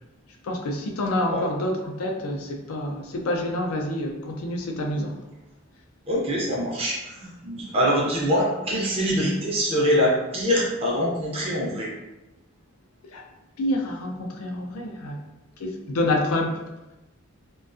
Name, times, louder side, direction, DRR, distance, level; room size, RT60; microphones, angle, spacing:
voice 1, 0.4-5.2 13.1-13.2 13.6-15.2 15.6-16.6, left 1 dB, 90° left, 2 dB, 0.4 m, -27 dB
voice 2, 6.1-11.9, equal, 25° right, -4 dB, 0.5 m, -24 dB
2.4 x 2.2 x 2.4 m, 0.98 s
head